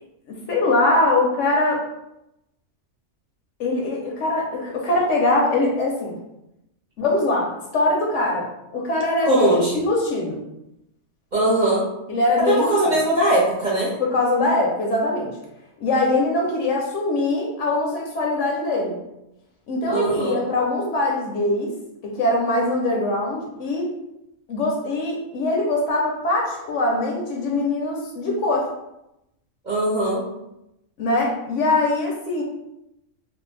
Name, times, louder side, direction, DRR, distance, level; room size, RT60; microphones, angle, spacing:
voice 1, 0.5-1.8 3.6-6.2 7.0-8.5 8.7-10.4 12.1-12.7 14.0-15.3 15.8-19.0 19.7-21.7 22.0-23.9 24.5-28.7 31.0-32.4, left 2 dB, 70° left, -1 dB, 0.9 m, -22 dB
voice 2, 9.2-9.7 11.3-11.9 12.5-13.9 19.9-20.4 29.6-30.2, right 2 dB, 45° right, -7 dB, 0.7 m, -20 dB
2.6 x 2.1 x 3.1 m, 0.87 s
omnidirectional pair, 1.4 m